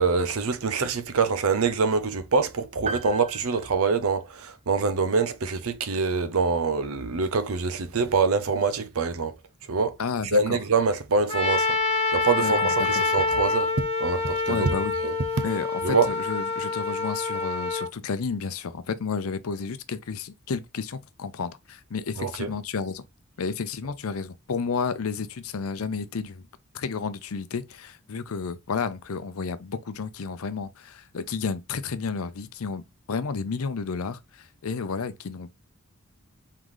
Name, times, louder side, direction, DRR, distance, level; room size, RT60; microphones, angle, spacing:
voice 1, 0.0-9.3 9.7-10.0 10.2-11.7 12.1-14.7 15.0-15.4 15.8-16.1 22.2-22.5, right 4 dB, 75° right, 0.7 m, -25 dB
sound 1, 2.9-4.6, right 4 dB, 30° right, 0.5 m, -37 dB
voice 2, 10.0-10.6 12.3-13.0 14.5-14.9 15.4-23.0 23.4-26.5 26.7-35.6, left 5 dB, 75° left, 0.6 m, -31 dB
Trumpet, 11.3-17.9, left 3 dB, 30° left, 0.9 m, -26 dB
3.8 x 3.7 x 3.1 m
head